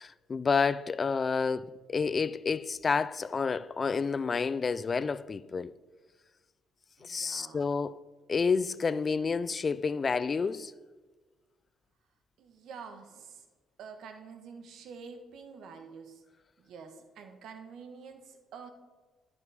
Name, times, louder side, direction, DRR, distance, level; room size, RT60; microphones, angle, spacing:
voice 1, 0.0-5.7 7.0-8.0 8.3-10.7, left 5 dB, 35° left, 0.3 m, -29 dB
voice 2, 7.0-7.8 12.4-13.5 13.8-16.2 16.6-18.7, right 5 dB, 70° right, 1.1 m, -48 dB
11.5 x 5.3 x 4.7 m
cardioid pair, 95°, 0 cm